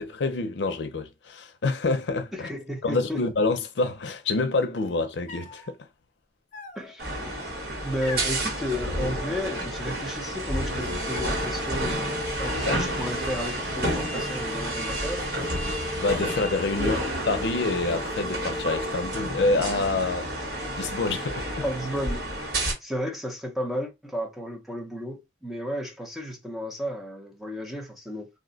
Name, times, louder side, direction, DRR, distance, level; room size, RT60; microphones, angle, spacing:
voice 1, 0.0-2.5 2.8-5.9 12.7-12.8 16.0-17.0 17.3-20.3 20.8-21.5, left 3 dB, 90° left, 0.5 m, -27 dB
voice 2, 2.3-3.2 6.8-7.3 7.8-15.3 16.8-17.1 21.6-22.3 22.5-28.3, equal, ahead, 0.6 m, -33 dB
sound 1, 5.3-5.7 6.5-7.2 8.0-8.4 9.0-9.8 10.1-10.7 11.1-11.7 12.4-13.3 13.6-14.3, left 2 dB, 40° left, 0.8 m, -44 dB
sound 2, 7.0-22.7, right 1 dB, 60° right, 1.5 m, -30 dB
2.6 x 2.1 x 3.8 m
head